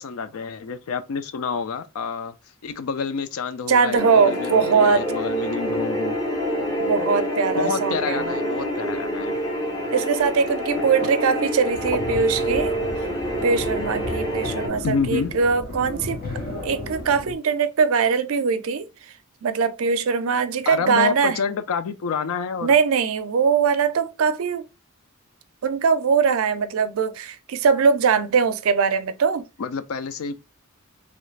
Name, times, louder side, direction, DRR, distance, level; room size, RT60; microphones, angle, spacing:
voice 1, 0.0-2.3 2.6-6.2 6.6-6.7 7.5-9.4 11.0-11.1 12.1-12.2 14.8-15.3 20.7-22.8 29.6-30.3, left 5 dB, 75° left, 0.4 m, -28 dB
voice 2, 3.7-5.1 6.8-8.4 9.9-13.1 13.4-16.2 16.6-18.9 19.4-21.4 22.6-24.6 25.6-29.4, right 5 dB, 75° right, 0.4 m, -21 dB
sound 1, 4.0-14.7, equal, 20° left, 0.9 m, -27 dB
sound 2, 11.7-17.3, left 2 dB, 45° left, 1.2 m, -33 dB
3.0 x 2.4 x 3.1 m
head